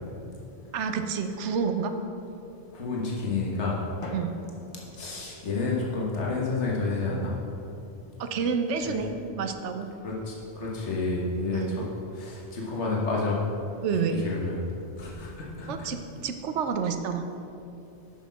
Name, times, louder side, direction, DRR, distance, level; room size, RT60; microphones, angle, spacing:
voice 1, 0.7-1.9 4.1-4.4 8.2-9.9 11.5-11.8 13.8-14.2 15.7-17.3, right 6 dB, 85° right, 7 dB, 1.0 m, -29 dB
voice 2, 2.7-3.8 5.0-7.3 8.8-9.0 10.0-11.9 12.1-13.4 14.1-14.6 15.0-15.9, left 3 dB, 80° left, -4 dB, 1.6 m, -30 dB
Drum, 4.0-6.0, left 2 dB, 35° left, 0.6 m, -44 dB
8.0 x 6.4 x 5.6 m, 2.7 s
omnidirectional pair, 1.2 m